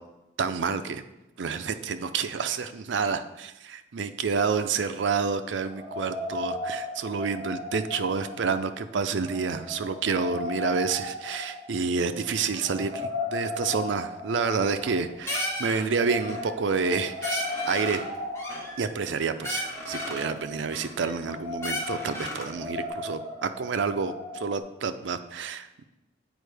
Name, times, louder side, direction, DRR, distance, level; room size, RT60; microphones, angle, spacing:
voice 1, 0.4-1.0 1.4-18.0 18.8-25.8, right 5 dB, 85° right, 9 dB, 0.5 m, -29 dB
sound 1, 5.7-24.6, left 2 dB, 20° right, 1.5 m, -37 dB
sound 2, 14.6-15.0 15.3-15.8 16.1-16.5 16.8-16.9 17.2-18.1 18.3-19.1 19.4-20.3 20.7-21.3 21.6-22.5, left 1 dB, 15° left, 1.0 m, -34 dB
8.1 x 4.5 x 3.4 m, 0.94 s
head